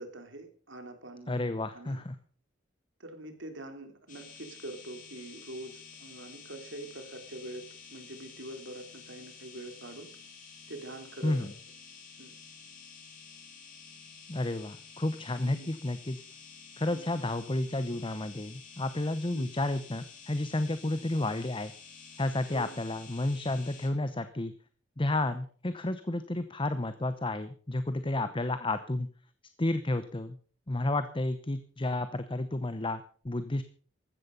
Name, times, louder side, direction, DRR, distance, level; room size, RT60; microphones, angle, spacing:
voice 1, 0.0-2.0 3.0-7.6 7.9-10.1 10.7-11.5 12.2-12.4 15.4-15.7 16.9-17.0 19.3-19.5 22.5-22.8 28.2-28.3, right 1 dB, 80° right, 6 dB, 3.4 m, -44 dB
voice 2, 1.3-2.1 11.2-11.5 14.3-16.2 16.8-21.7 22.2-24.5 25.0-29.1 29.6-30.4 30.7-33.6, left 2 dB, 25° left, 11 dB, 0.9 m, -31 dB
sound 1, 4.1-23.9, left 6 dB, 45° left, 5.5 m, -51 dB
15.0 x 13.0 x 5.5 m, 0.43 s
head